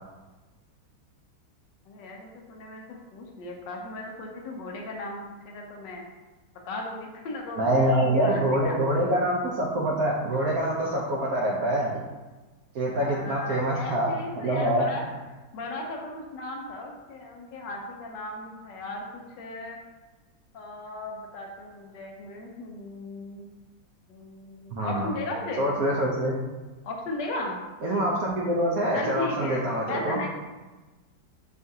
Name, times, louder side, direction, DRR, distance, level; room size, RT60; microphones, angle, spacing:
voice 1, 1.9-5.2 5.4-6.0 6.7-8.8 12.9-15.0 15.5-19.8 20.5-23.5 24.1-25.7 26.8-27.6 28.9-29.6 29.9-30.3, left 2 dB, 75° left, 0 dB, 1.3 m, -36 dB
voice 2, 7.6-12.0 12.7-14.9 24.7-25.1 25.6-26.4 27.8-30.2, right 1 dB, 70° right, -4 dB, 0.8 m, -25 dB
6.5 x 2.4 x 2.6 m, 1.2 s
omnidirectional pair, 2.0 m